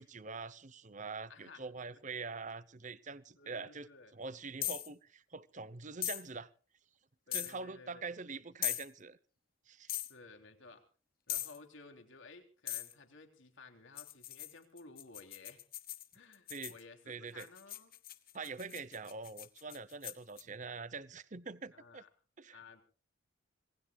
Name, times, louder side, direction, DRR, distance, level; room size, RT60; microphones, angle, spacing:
voice 1, 0.0-6.5 7.3-9.2 9.7-9.9 16.5-16.7 17.1-17.5 18.3-22.0 22.4-22.6, right 4 dB, 35° right, 17 dB, 0.8 m, -44 dB
voice 2, 1.3-1.6 3.4-4.1 7.3-8.1 10.1-10.8 11.3-15.6 16.1-17.9 21.7-22.1 22.5-22.8, left 3 dB, 70° left, 5 dB, 3.4 m, -55 dB
sound 1, 4.6-4.9 6.0-6.2 7.3-7.5 8.6-8.9 9.9-10.1 11.3-11.6 12.7-12.9 14.0-16.8 17.4-20.4, left 14 dB, 45° left, 1.3 m, -39 dB
26.0 x 20.0 x 2.4 m, 0.37 s
head